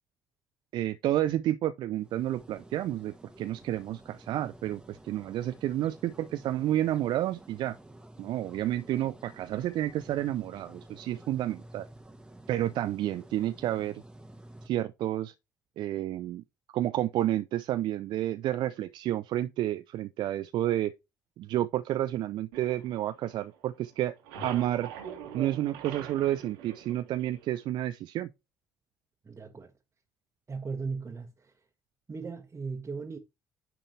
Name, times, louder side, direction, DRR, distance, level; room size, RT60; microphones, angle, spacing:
voice 1, 0.7-7.8 8.2-11.9 12.5-14.0 14.7-15.3 15.8-16.4 16.7-20.9 21.4-24.1 24.4-24.9 25.3-28.3, right 13 dB, 55° right, 0.5 m, -30 dB
sound 1, 1.9-14.7, right 1 dB, 10° right, 1.3 m, -51 dB
sound 2, 22.5-23.7 24.0-27.7, right 7 dB, 75° right, 1.8 m, -43 dB
voice 2, 29.2-29.7 30.5-31.6 32.1-33.2, right 4 dB, 30° right, 1.4 m, -37 dB
10.0 x 3.8 x 3.2 m
figure-of-eight pair, 50°, 9 cm